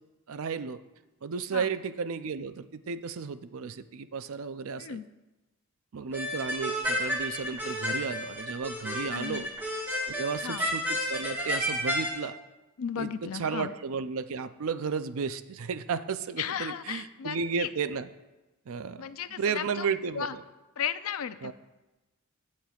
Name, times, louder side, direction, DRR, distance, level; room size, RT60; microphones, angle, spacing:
voice 1, 0.3-0.8 1.2-5.0 5.9-9.5 10.1-12.3 13.0-13.1 13.3-18.1 18.7-20.4 21.4-21.5, right 5 dB, 70° right, 12 dB, 0.5 m, -33 dB
voice 2, 4.8-5.1 9.1-9.5 10.4-10.6 12.8-13.7 16.4-17.7 19.0-19.9 20.1-20.4 20.8-21.5, left 8 dB, 70° left, 13 dB, 0.4 m, -35 dB
sound 1, 6.1-12.1, equal, 10° right, 1.4 m, -31 dB
15.5 x 8.5 x 2.4 m, 1.1 s
head